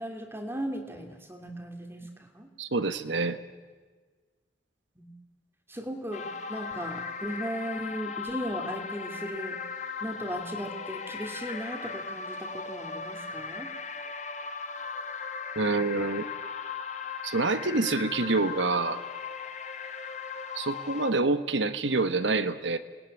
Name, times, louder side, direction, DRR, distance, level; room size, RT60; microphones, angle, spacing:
voice 1, 0.0-2.5 5.0-5.1 5.7-9.6 10.0-13.7, equal, 10° right, 4 dB, 2.4 m, -37 dB
voice 2, 2.6-3.4 15.5-16.3 17.2-19.0 20.5-22.8, right 3 dB, 75° right, 11 dB, 1.4 m, -27 dB
sound 1, 6.1-21.1, left 5 dB, 35° left, 1.4 m, -37 dB
28.0 x 19.5 x 9.9 m, 1.4 s
head